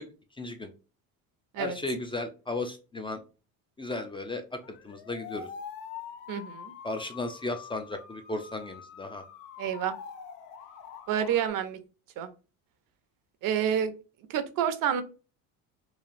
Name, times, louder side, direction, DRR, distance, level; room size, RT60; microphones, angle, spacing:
voice 1, 0.4-0.7 1.6-3.2 3.8-5.5 6.8-9.2, left 2 dB, 15° left, 6 dB, 0.3 m, -35 dB
sound 1, 4.6-11.5, left 7 dB, 80° left, 0.6 m, -45 dB
voice 2, 6.3-6.7 9.6-10.0 11.1-11.8 12.2-12.3 13.4-13.9 14.3-15.0, right 9 dB, 55° right, 10 dB, 0.6 m, -28 dB
3.1 x 2.3 x 2.5 m, 0.33 s
supercardioid pair, 90°, 41 cm